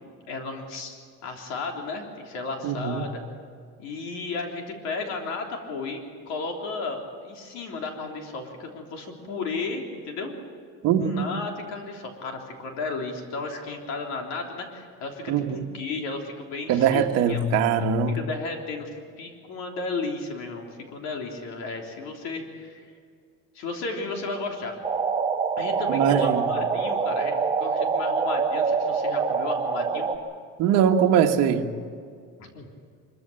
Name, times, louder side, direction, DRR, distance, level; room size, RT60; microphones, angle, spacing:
voice 1, 0.0-3.2 3.8-6.0 6.3-10.3 11.0-17.5 18.1-18.9 19.2-22.9 23.5-24.8 25.6-30.1 32.5-32.7, left 3 dB, 65° left, 2 dB, 3.5 m, -34 dB
voice 2, 2.6-3.1 10.8-11.3 15.3-15.7 16.7-18.2 25.9-26.4 30.6-31.7, right 7 dB, 60° right, 3 dB, 1.7 m, -22 dB
sound 1, 24.8-30.2, right 5 dB, 15° right, 1.2 m, -25 dB
24.5 x 15.0 x 8.8 m, 2.2 s
cardioid pair, 160°, 29 cm